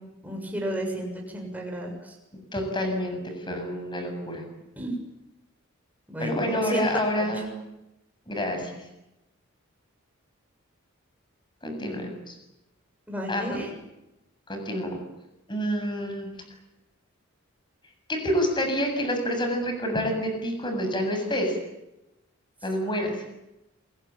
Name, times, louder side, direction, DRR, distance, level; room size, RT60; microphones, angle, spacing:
voice 1, 0.2-2.1 4.8-4.9 6.1-6.9 7.2-7.3 13.1-13.7, right 1 dB, 10° right, 1 dB, 7.0 m, -32 dB
voice 2, 2.5-4.4 6.2-7.6 8.3-8.9 11.6-12.4 13.3-13.7 14.5-15.0 15.5-16.3 18.1-21.6 22.6-23.2, equal, 20° left, 5 dB, 7.5 m, -28 dB
28.5 x 22.0 x 9.0 m, 0.93 s
head